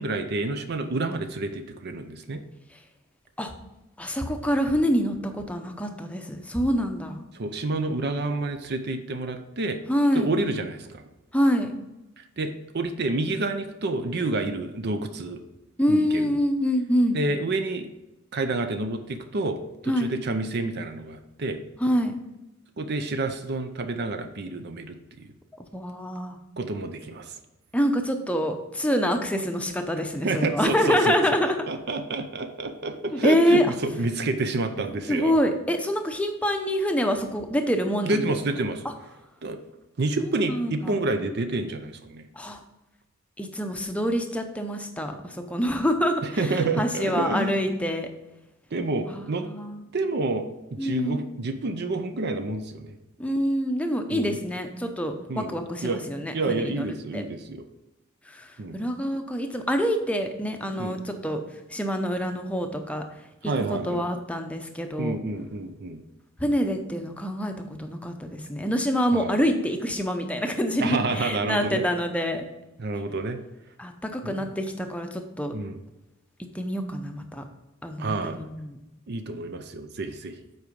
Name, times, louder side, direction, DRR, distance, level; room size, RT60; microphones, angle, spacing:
voice 1, 0.0-2.4 7.3-9.8 10.1-11.0 12.2-15.4 15.9-16.3 17.1-17.9 18.3-21.6 22.8-25.3 26.6-27.4 30.2-31.2 31.4-35.3 38.0-38.9 39.4-39.6 40.0-42.3 46.2-47.6 48.7-49.5 49.9-53.0 54.1-54.4 55.3-55.5 55.8-56.0 56.3-57.6 58.6-58.8 60.8-61.0 63.4-64.1 65.0-66.0 69.1-69.4 70.8-71.8 72.8-73.4 74.2-74.4 75.5-75.8 78.0-78.4 79.1-80.4, right 2 dB, 50° right, 7 dB, 0.6 m, -29 dB
voice 2, 4.0-7.2 9.9-10.3 11.3-11.8 15.8-17.2 19.9-20.1 21.8-22.2 25.7-26.4 27.7-31.5 33.1-33.7 35.1-38.3 38.8-38.9 40.2-41.1 42.4-42.6 43.4-48.1 49.1-49.8 50.8-51.3 53.2-57.2 58.3-61.4 61.7-63.1 63.4-65.2 66.4-67.5 67.8-72.4 73.8-75.5 76.5-77.4 77.8-78.8, equal, 5° left, 5 dB, 0.7 m, -26 dB
7.9 x 4.7 x 5.2 m, 0.96 s
head